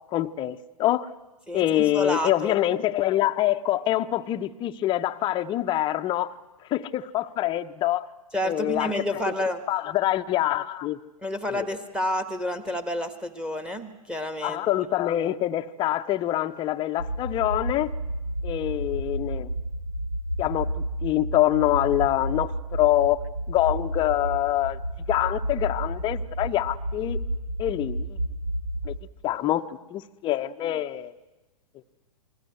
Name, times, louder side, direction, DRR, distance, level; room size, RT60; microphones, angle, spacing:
voice 1, 0.1-1.1 1.5-6.3 6.7-8.1 8.4-9.2 9.7-11.0 11.5-11.7 14.4-17.9 18.4-19.5 20.4-20.7 21.0-23.2 23.5-24.8 25.1-27.2 27.6-28.1 28.9-29.0 29.2-29.6 29.9-31.1, left 14 dB, 25° left, 9 dB, 0.8 m, -25 dB
voice 2, 1.5-2.6 8.3-9.6 11.2-14.7, left 1 dB, 5° right, 11 dB, 1.6 m, -29 dB
sound 1, 17.0-29.0, right 1 dB, 80° right, 1.8 m, -31 dB
28.0 x 21.0 x 8.0 m, 1.1 s
figure-of-eight pair, 115°, 20 cm